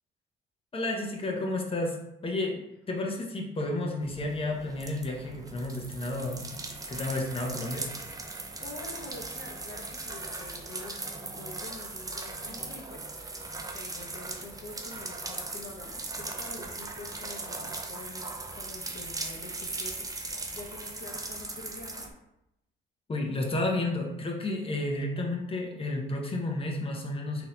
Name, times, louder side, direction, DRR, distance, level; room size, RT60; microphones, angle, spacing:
voice 1, 0.7-6.5 6.9-7.9 23.1-27.5, left 2 dB, 30° left, 0 dB, 0.9 m, -31 dB
sound 1, 4.0-22.1, right 3 dB, 15° right, 0.5 m, -39 dB
voice 2, 8.6-22.1, left 2 dB, 60° left, -1 dB, 0.9 m, -46 dB
3.9 x 2.9 x 3.8 m, 0.85 s
cardioid pair, 90°, 20 cm